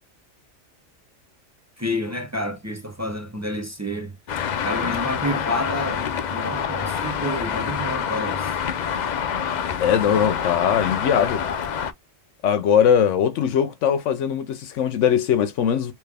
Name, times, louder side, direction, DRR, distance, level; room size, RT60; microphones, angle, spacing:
voice 1, 1.8-4.2 4.6-8.6, left 1 dB, 20° right, 0.5 m, -29 dB
Traffic noise roadway noise, 4.3-11.9, left 7 dB, 55° left, 0.5 m, -26 dB
voice 2, 9.8-11.4 12.4-15.9, left 8 dB, 85° left, 1.0 m, -20 dB
3.5 x 3.0 x 3.3 m
omnidirectional pair, 1.2 m